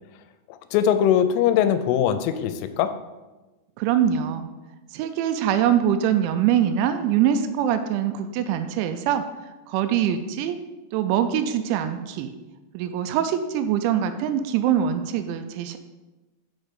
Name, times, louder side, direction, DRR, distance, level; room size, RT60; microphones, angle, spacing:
voice 1, 0.7-2.9, left 9 dB, 90° left, 10 dB, 3.1 m, -21 dB
voice 2, 3.8-4.5 4.9-9.2 9.7-10.6 10.9-12.3 12.7-15.8, right 9 dB, 85° right, 9 dB, 2.7 m, -23 dB
6.4 x 6.0 x 5.2 m, 1.1 s
omnidirectional pair, 5.6 m